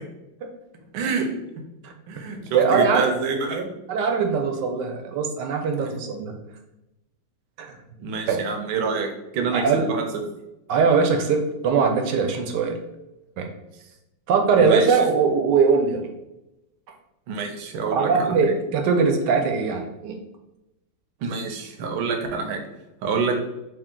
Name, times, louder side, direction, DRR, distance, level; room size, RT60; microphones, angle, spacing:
voice 1, 0.9-1.4 2.1-3.7 5.8-5.9 8.0-10.2 14.6-15.0 17.3-18.5 21.2-22.6 23.0-23.4, right 4 dB, 90° right, 3 dB, 1.5 m, -27 dB
voice 2, 2.5-3.1 3.9-6.3 7.6-7.7 8.3-8.4 9.5-9.9 10.7-12.8 13.4-13.5 14.3-16.1 17.9-20.2, right 5 dB, 70° right, 4 dB, 1.1 m, -21 dB
3.5 x 2.7 x 3.7 m, 0.93 s
omnidirectional pair, 2.2 m